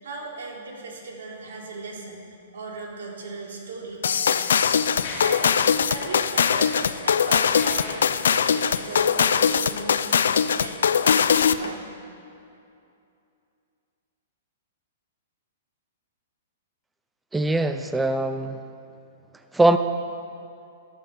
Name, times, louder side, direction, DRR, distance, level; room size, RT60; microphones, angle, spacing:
voice 1, 0.0-2.2 2.5-4.7 5.2-5.6 5.9-11.0 11.4-11.9, right 3 dB, 80° right, -1 dB, 3.4 m, -38 dB
Mechanisms, 3.4-3.5 4.2-10.0, left 3 dB, 40° left, 3.4 m, -40 dB
sound 1, 4.0-11.7, left 7 dB, 90° left, 0.5 m, -21 dB
voice 2, 17.3-18.6 19.5-19.8, right 2 dB, 5° right, 9 dB, 0.3 m, -21 dB
13.0 x 12.0 x 6.7 m, 2.6 s
hypercardioid pair, 170°, 0 cm